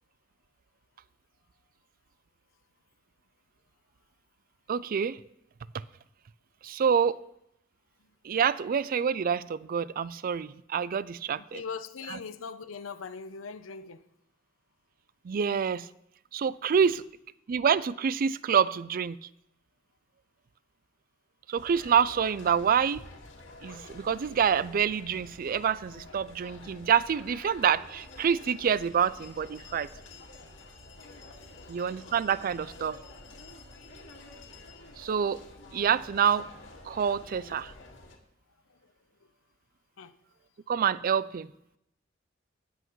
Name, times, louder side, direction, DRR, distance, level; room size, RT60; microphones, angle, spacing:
voice 1, 4.7-5.2 6.6-7.2 8.2-11.6 15.2-15.9 16.3-17.0 17.5-19.2 21.5-23.1 23.6-29.9 31.7-33.0 35.0-35.4 35.7-36.5 36.9-37.7 40.7-41.5, right 7 dB, 45° right, 0.4 m, -27 dB
voice 2, 11.4-14.0 16.8-16.9 31.4-31.8 40.0-40.1, left 5 dB, 85° left, 0.7 m, -41 dB
sound 1, 21.5-38.2, left 2 dB, 70° left, 1.9 m, -49 dB
19.5 x 8.0 x 3.1 m
head